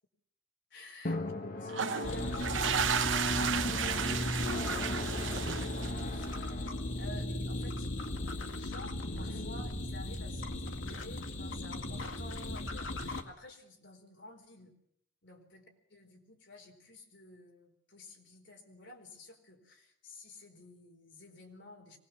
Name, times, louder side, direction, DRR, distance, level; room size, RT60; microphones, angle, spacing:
voice 1, 0.7-1.2 1.6-4.9 5.2-6.7 7.0-7.9 8.3-14.7 15.2-15.6 15.9-22.0, left 2 dB, 65° left, 2 dB, 4.3 m, -52 dB
Drum, 1.0-10.3, left 1 dB, 50° left, 1.7 m, -39 dB
sound 1, 1.7-6.2, right 8 dB, 75° right, 0.8 m, -33 dB
sound 2, 2.0-13.2, left 1 dB, 90° left, 2.1 m, -37 dB
24.0 x 19.0 x 7.2 m, 0.72 s
head